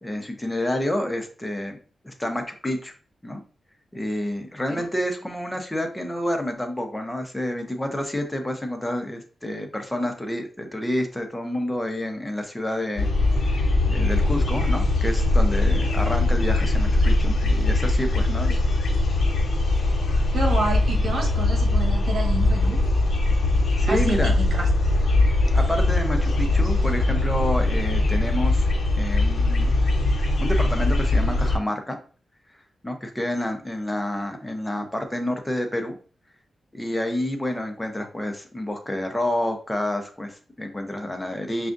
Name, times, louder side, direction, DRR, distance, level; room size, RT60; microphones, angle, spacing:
voice 1, 0.0-1.8 2.0-2.9 3.2-3.4 3.9-13.1 13.5-18.5 23.8-24.3 25.5-28.6 29.0-29.7 30.4-32.0 32.8-36.0 36.7-41.7, left 1 dB, 10° left, 4 dB, 0.7 m, -29 dB
sound 1, 13.0-31.6, left 2 dB, 70° left, 1.0 m, -21 dB
voice 2, 20.3-22.8 23.9-24.7, right 2 dB, 65° right, 1 dB, 1.3 m, -29 dB
6.1 x 2.4 x 2.5 m, 0.38 s
wide cardioid pair, 105°, 0 cm